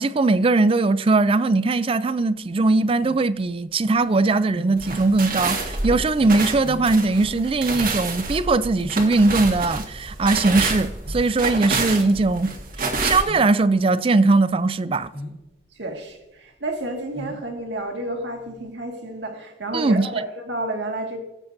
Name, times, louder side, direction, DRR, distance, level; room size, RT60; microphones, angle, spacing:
voice 1, 0.0-12.5 13.0-15.1 19.7-20.1, right 3 dB, 30° right, 0.4 m, -20 dB
sound 1, 2.4-18.7, equal, 75° left, 2.5 m, -43 dB
sound 2, 4.8-13.2, right 3 dB, 50° right, 1.7 m, -28 dB
voice 2, 15.8-21.2, right 2 dB, 70° right, 2.1 m, -30 dB
18.0 x 8.2 x 2.7 m
head